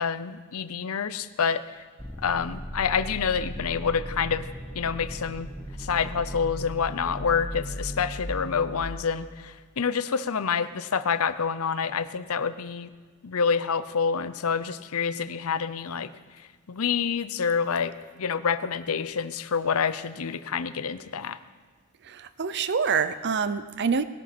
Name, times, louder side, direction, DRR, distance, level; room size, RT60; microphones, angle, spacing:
voice 1, 0.0-1.8 2.2-4.5 4.7-5.5 5.8-12.9 13.2-16.1 16.7-21.4, left 6 dB, 75° left, 13 dB, 0.6 m, -27 dB
sound 1, 2.0-8.8, equal, 10° left, 1.1 m, -37 dB
voice 2, 22.0-24.0, right 6 dB, 50° right, 13 dB, 0.6 m, -26 dB
19.5 x 11.5 x 6.0 m, 1.5 s
head